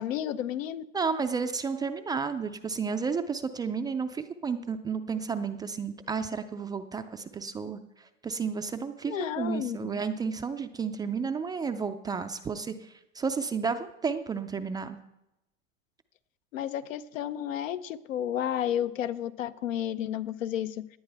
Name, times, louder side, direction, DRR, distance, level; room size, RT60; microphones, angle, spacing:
voice 1, 0.0-0.8 9.1-10.0 16.5-20.9, left 10 dB, 85° left, 12 dB, 0.8 m, -32 dB
voice 2, 0.9-15.0, right 5 dB, 10° right, 8 dB, 0.3 m, -32 dB
17.5 x 10.0 x 3.4 m, 0.89 s
hypercardioid pair, 115°, 38 cm